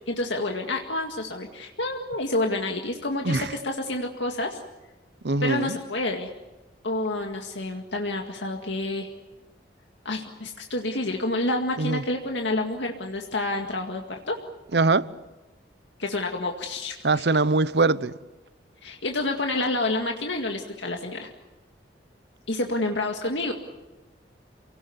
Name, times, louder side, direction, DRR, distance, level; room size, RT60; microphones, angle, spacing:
voice 1, 0.1-4.6 5.4-6.3 6.8-9.1 10.0-14.4 16.0-17.2 18.8-21.3 22.5-23.5, left 2 dB, 90° left, 2.1 m, -29 dB
voice 2, 5.2-5.8 11.8-12.0 14.7-15.1 17.0-18.1, right 3 dB, 70° right, 0.8 m, -22 dB
28.5 x 18.5 x 9.5 m
head